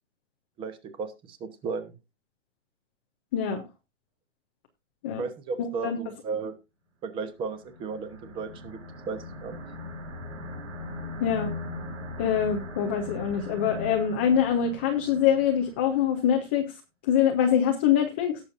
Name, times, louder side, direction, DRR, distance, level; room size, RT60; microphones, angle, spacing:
voice 1, 0.6-1.9 5.2-6.5 7.0-8.8 9.1-9.6, right 5 dB, 15° right, 12 dB, 0.9 m, -34 dB
voice 2, 3.3-3.6 5.0-5.2 5.8-6.0 11.2-11.5 12.2-16.7 17.1-18.4, left 8 dB, 10° left, 3 dB, 0.4 m, -24 dB
sound 1, 7.4-16.1, left 2 dB, 75° right, 5.3 m, -39 dB
18.0 x 6.9 x 2.6 m, 0.24 s
hypercardioid pair, 150°, 38 cm